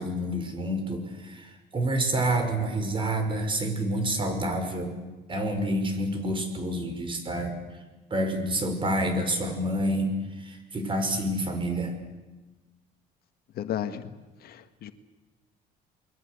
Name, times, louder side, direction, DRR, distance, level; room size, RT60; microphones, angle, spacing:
voice 1, 0.0-4.9 5.3-7.5 8.1-11.9, right 1 dB, 30° right, 7 dB, 5.7 m, -28 dB
voice 2, 13.6-14.1 14.4-14.9, left 10 dB, 65° left, 9 dB, 1.7 m, -33 dB
29.0 x 22.0 x 8.3 m, 1.2 s
cardioid pair, 110°, 17 cm